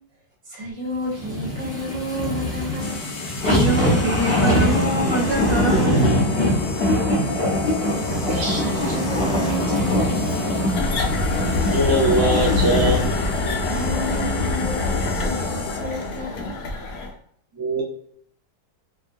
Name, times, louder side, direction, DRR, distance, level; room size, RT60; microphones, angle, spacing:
voice 1, 0.4-3.1 7.1-7.7 8.3-10.3 13.5-16.8, equal, 50° right, -4 dB, 1.0 m, -32 dB
sound 1, 1.1-15.6 16.0-16.1, left 1 dB, 45° left, 0.8 m, -23 dB
sound 2, 2.8-16.2, left 4 dB, 85° left, 1.2 m, -36 dB
voice 2, 3.4-6.1, right 2 dB, 70° right, -5 dB, 0.6 m, -24 dB
voice 3, 8.3-8.6 11.5-13.0 17.5-17.8, right 1 dB, 20° right, -5 dB, 0.5 m, -22 dB
sound 3, 10.7-17.1, left 3 dB, 70° left, 1.0 m, -25 dB
2.8 x 2.2 x 2.5 m, 0.65 s
omnidirectional pair, 1.8 m